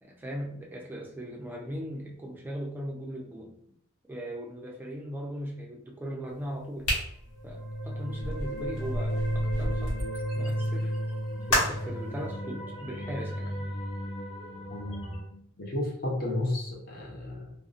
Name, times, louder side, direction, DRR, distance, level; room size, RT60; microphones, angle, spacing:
voice 1, 0.0-3.6 4.1-6.9 7.4-10.1 10.3-10.9 11.5-13.6, equal, 10° right, -1 dB, 0.3 m, -38 dB
sound 1, 6.8-10.1 11.5-12.0, equal, 80° left, 1.1 m, -31 dB
sound 2, 7.3-15.2, equal, 25° left, 1.0 m, -33 dB
voice 2, 14.7-17.5, left 1 dB, 45° left, -1 dB, 0.6 m, -33 dB
2.5 x 2.0 x 2.4 m, 0.69 s
head